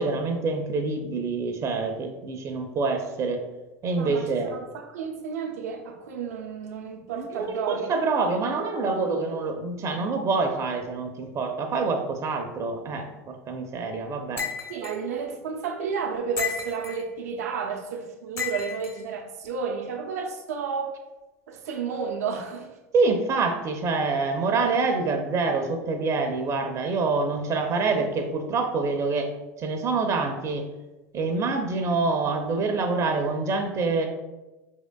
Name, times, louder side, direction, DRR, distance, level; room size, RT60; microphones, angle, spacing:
voice 1, 0.0-3.4 3.8-4.5 7.1-14.5 22.9-29.3 29.6-30.7 31.1-34.1, right 3 dB, 40° right, 4 dB, 0.6 m, -26 dB
voice 2, 4.0-7.9 14.7-21.0 21.5-22.7, right 6 dB, 80° right, 2 dB, 0.6 m, -32 dB
sound 1, 14.4-15.0 16.4-17.0 18.4-18.9, left 6 dB, 30° left, 0.7 m, -32 dB
4.8 x 3.6 x 2.2 m, 1.1 s
hypercardioid pair, 90°, 8 cm